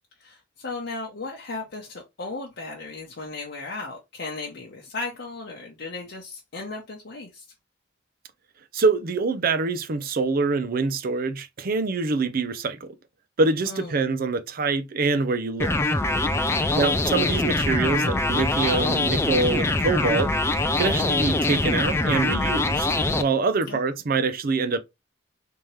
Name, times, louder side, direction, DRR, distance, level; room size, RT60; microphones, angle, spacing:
voice 1, 0.2-7.4 13.6-14.0 16.5-16.9 23.7-23.8, left 3 dB, 65° left, 0.8 m, -36 dB
voice 2, 8.7-12.9 13.4-15.8 16.7-20.3 20.8-22.9 23.2-24.8, right 4 dB, 50° right, 0.5 m, -25 dB
sound 1, 15.6-23.2, left 2 dB, 15° left, 0.4 m, -23 dB
3.5 x 2.9 x 3.2 m
head